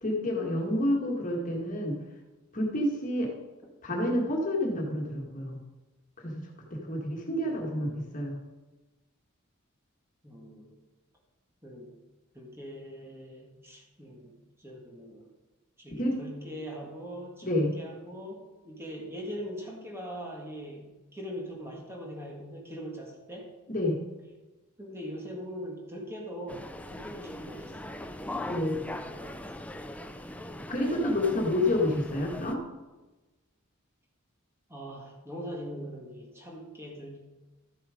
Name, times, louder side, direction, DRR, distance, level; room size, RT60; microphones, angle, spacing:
voice 1, 0.0-2.0 2.5-3.3 3.8-5.6 6.2-6.4 6.7-8.4 15.9-16.2 17.4-17.7 23.7-24.0 28.4-28.8 30.7-32.6, left 1 dB, 40° left, 0 dB, 1.8 m, -29 dB
voice 2, 7.5-8.0 10.2-10.8 11.6-11.9 12.3-15.3 15.8-23.5 24.8-28.0 29.0-29.4 34.7-37.2, equal, 10° right, -1 dB, 1.8 m, -42 dB
sound 1, 26.5-32.5, left 1 dB, 5° left, 0.5 m, -40 dB
13.0 x 7.4 x 5.1 m, 1.2 s
head